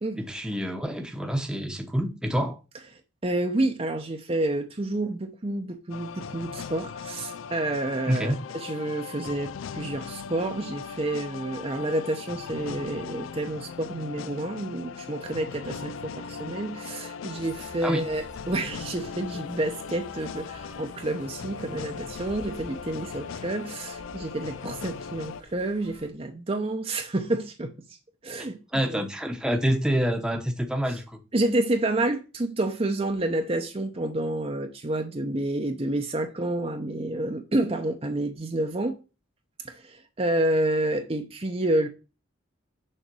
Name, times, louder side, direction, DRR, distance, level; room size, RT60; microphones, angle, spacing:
voice 1, 0.2-2.6 8.1-8.4 17.8-18.0 28.7-31.2, equal, 5° right, 0.9 m, -27 dB
voice 2, 3.2-27.7 28.2-29.0 31.3-39.0 39.6-41.9, right 1 dB, 30° right, 0.7 m, -29 dB
sound 1, 5.9-25.4, left 6 dB, 85° left, 0.4 m, -39 dB
sound 2, 17.3-26.1, left 1 dB, 40° left, 1.4 m, -49 dB
6.7 x 4.0 x 6.2 m
head